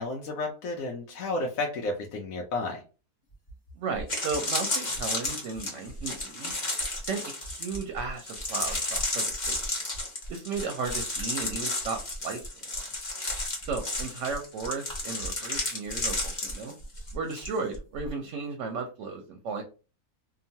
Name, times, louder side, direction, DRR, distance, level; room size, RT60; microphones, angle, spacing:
voice 1, 0.0-2.8, left 2 dB, 70° left, 0 dB, 1.0 m, -32 dB
sound 1, 3.5-3.6 4.0-17.5 17.7-18.1, left 2 dB, 35° left, 1.0 m, -32 dB
voice 2, 3.8-6.5 7.0-9.6 10.3-12.7 13.7-16.7 17.1-19.6, right 4 dB, 65° right, 5 dB, 0.8 m, -35 dB
2.9 x 2.3 x 2.7 m, 0.34 s
omnidirectional pair, 1.5 m